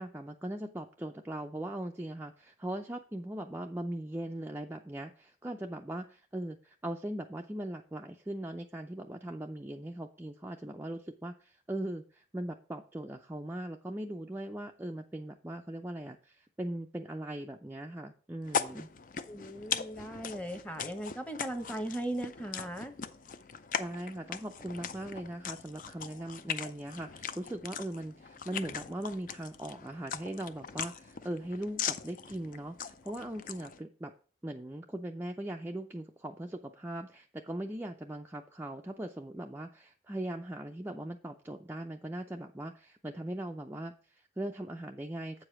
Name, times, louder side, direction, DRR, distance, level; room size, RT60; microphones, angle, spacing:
voice 1, 0.0-18.9 23.8-34.1 34.4-45.4, right 1 dB, 10° right, 3 dB, 0.4 m, -40 dB
sound 1, 18.4-33.8, left 7 dB, 45° left, 0.5 m, -40 dB
voice 2, 19.3-22.9, right 1 dB, 5° left, 7 dB, 0.9 m, -38 dB
8.1 x 4.9 x 5.8 m, 0.39 s
head